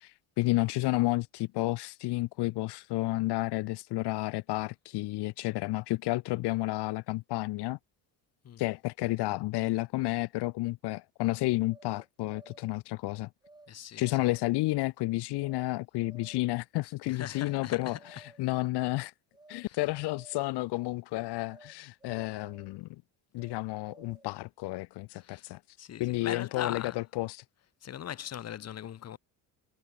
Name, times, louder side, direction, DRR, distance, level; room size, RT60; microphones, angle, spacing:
voice 1, 0.0-7.8 8.6-13.3 14.0-19.1 19.5-23.0 23.3-27.4, left 20 dB, 70° left, 1.0 m, -31 dB
sound 1, 11.7-12.8 13.4-13.7 14.0-14.6 15.4-15.6 16.0-16.5 17.3-17.6 17.9-18.6 19.3-19.6 19.9-20.6 21.5-21.7 22.0-22.8 23.4-24.4, right 2 dB, 10° right, 5.2 m, -56 dB
voice 2, 13.7-14.3 17.1-18.0 19.7-19.8 25.2-25.4 25.8-27.0 27.8-29.2, left 10 dB, 35° left, 1.6 m, -39 dB
cardioid pair, 145°, 42 cm